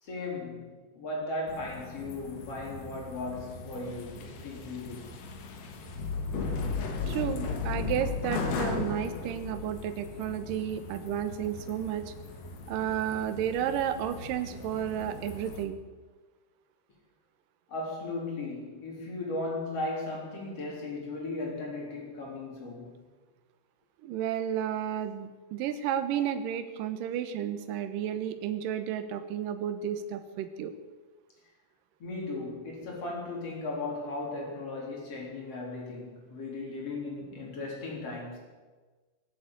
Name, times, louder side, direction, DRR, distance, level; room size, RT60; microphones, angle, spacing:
voice 1, 0.0-5.3 17.7-23.0 32.0-38.4, left 2 dB, 35° left, -2 dB, 4.3 m, -37 dB
sound 1, 1.5-15.6, left 4 dB, 60° left, 2.6 m, -37 dB
voice 2, 7.1-12.1 12.7-15.8 24.0-30.7, right 9 dB, 70° right, 8 dB, 2.1 m, -32 dB
20.5 x 8.2 x 8.3 m, 1.3 s
omnidirectional pair, 5.3 m